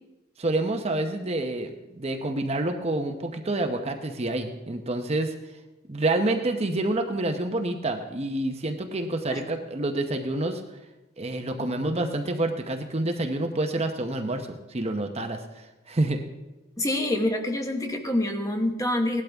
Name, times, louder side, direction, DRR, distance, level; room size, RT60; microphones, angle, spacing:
voice 1, 0.4-5.3 5.9-10.6 11.2-15.4 15.9-16.2, right 2 dB, 30° right, 5 dB, 0.8 m, -28 dB
voice 2, 16.8-19.2, left 1 dB, 15° left, 4 dB, 1.0 m, -26 dB
17.5 x 12.0 x 3.5 m, 1.0 s
head